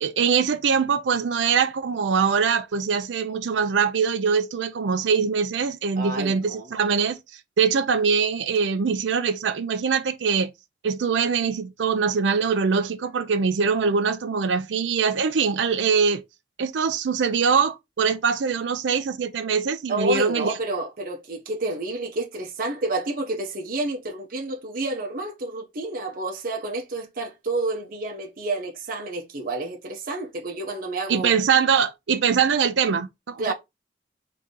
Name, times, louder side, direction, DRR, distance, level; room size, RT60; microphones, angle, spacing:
voice 1, 0.0-7.2 7.6-10.5 10.8-16.2 16.6-20.5 31.1-33.5, right 6 dB, 85° right, 0.5 m, -23 dB
voice 2, 6.0-6.7 19.9-31.3 33.4-33.5, right 2 dB, 50° right, 0.8 m, -29 dB
3.7 x 2.8 x 3.7 m
head